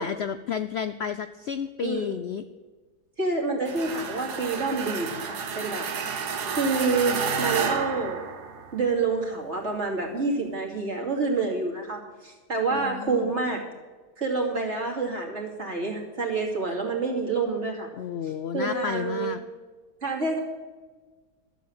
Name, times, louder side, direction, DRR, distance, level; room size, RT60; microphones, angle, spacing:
voice 1, 0.0-2.4 12.7-13.3 18.0-19.4, left 8 dB, 80° left, 11 dB, 0.5 m, -31 dB
voice 2, 1.8-2.1 3.2-5.8 6.5-8.2 8.7-13.6 14.2-17.9 18.5-19.4 20.0-20.4, right 3 dB, 45° right, -1 dB, 2.9 m, -28 dB
sound 1, 3.7-8.9, right 6 dB, 75° right, 1.7 m, -31 dB
12.5 x 7.6 x 8.6 m, 1.4 s
omnidirectional pair, 1.7 m